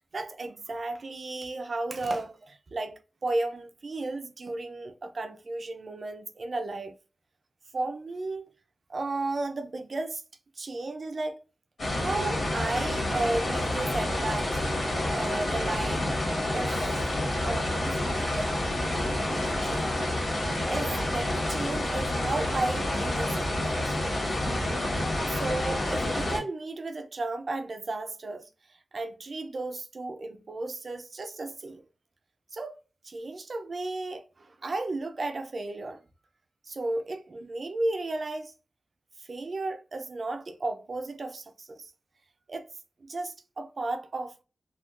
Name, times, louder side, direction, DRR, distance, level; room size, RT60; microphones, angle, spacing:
voice 1, 0.1-7.0 7.7-8.5 8.9-10.2 10.6-11.4 12.0-14.6 15.1-16.2 16.5-16.8 17.4-20.0 20.7-24.0 25.2-28.5 28.9-31.8 32.5-32.8 33.0-36.0 36.7-38.5 39.2-41.9 42.5-42.7 43.0-44.4, right 2 dB, 55° right, 0.4 m, -34 dB
sound 1, 11.8-26.4, left 1 dB, 75° left, 1.6 m, -28 dB
3.6 x 2.3 x 2.3 m
wide cardioid pair, 125°, 0 cm